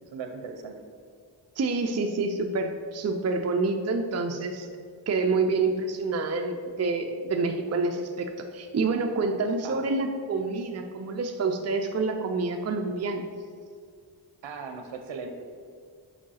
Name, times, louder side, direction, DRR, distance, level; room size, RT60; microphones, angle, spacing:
voice 1, 0.0-0.7 9.1-9.2 9.6-9.9 14.4-15.3, right 5 dB, 70° right, 5 dB, 0.7 m, -38 dB
voice 2, 1.6-4.7 5.1-13.3, right 3 dB, 35° right, 5 dB, 0.5 m, -27 dB
5.0 x 4.8 x 5.6 m, 2.2 s
cardioid pair, 65°, 46 cm